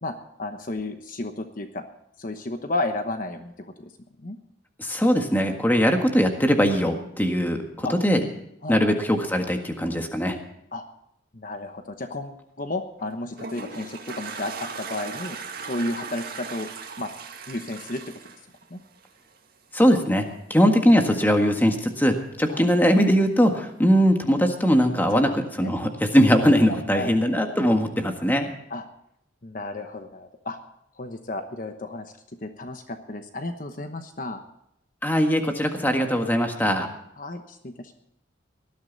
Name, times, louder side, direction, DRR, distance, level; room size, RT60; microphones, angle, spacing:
voice 1, 0.0-1.8 2.2-3.9 4.2-4.4 7.8-7.9 8.6-8.9 10.7-10.8 11.3-15.4 15.6-16.7 17.0-17.1 17.5-18.2 18.7-18.8 22.5-22.7 25.1-25.3 25.6-25.7 26.7-27.1 28.7-28.8 29.4-30.6 31.0-32.1 32.4-34.4 37.2-37.9, left 2 dB, 45° left, 7 dB, 1.0 m, -32 dB
voice 2, 4.8-8.2 8.7-10.4 19.7-28.5 35.0-36.9, equal, 10° left, 4 dB, 1.6 m, -21 dB
Toilet flush, 13.0-19.4, right 5 dB, 50° right, 2.0 m, -38 dB
19.0 x 12.5 x 4.0 m, 0.75 s
head